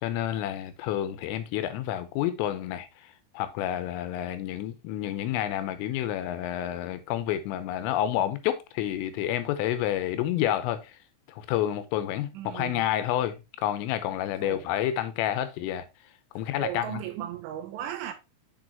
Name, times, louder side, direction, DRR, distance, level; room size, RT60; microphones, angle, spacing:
voice 1, 0.0-2.9 3.3-10.9 11.3-15.8 16.4-17.0, left 12 dB, 85° left, 3.3 m, -29 dB
voice 2, 12.3-12.9 14.4-14.7 16.6-18.1, right 11 dB, 80° right, 3.0 m, -36 dB
7.0 x 6.3 x 2.9 m
omnidirectional pair, 5.9 m